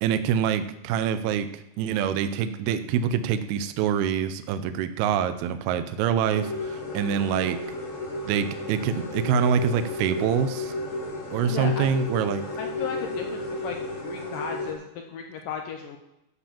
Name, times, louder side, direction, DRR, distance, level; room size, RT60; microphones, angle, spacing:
voice 1, 0.0-7.6 8.3-10.7 11.3-12.4, right 8 dB, 80° right, 11 dB, 2.4 m, -25 dB
sound 1, 6.3-14.7, left 2 dB, 60° left, 0.8 m, -33 dB
voice 2, 11.5-11.9 12.6-16.0, left 7 dB, 85° left, 3 dB, 2.0 m, -35 dB
13.0 x 5.0 x 7.1 m, 0.87 s
omnidirectional pair, 4.8 m